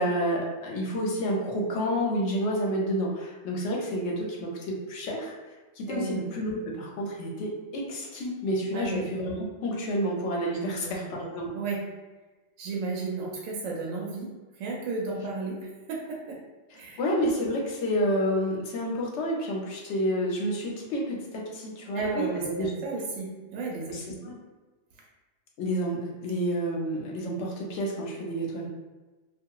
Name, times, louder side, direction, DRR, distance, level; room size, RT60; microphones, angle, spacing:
voice 1, 0.0-5.3 5.8-9.3 9.6-11.5 16.7-22.7 23.7-24.3 25.6-28.7, equal, 70° left, -2 dB, 0.8 m, -29 dB
voice 2, 5.9-6.2 8.7-9.0 10.5-11.1 11.5-11.9 12.6-14.3 14.6-16.4 16.7-17.0 21.9-24.4, right 3 dB, 90° right, -1 dB, 1.0 m, -34 dB
2.8 x 2.4 x 2.3 m, 1.2 s
omnidirectional pair, 1.3 m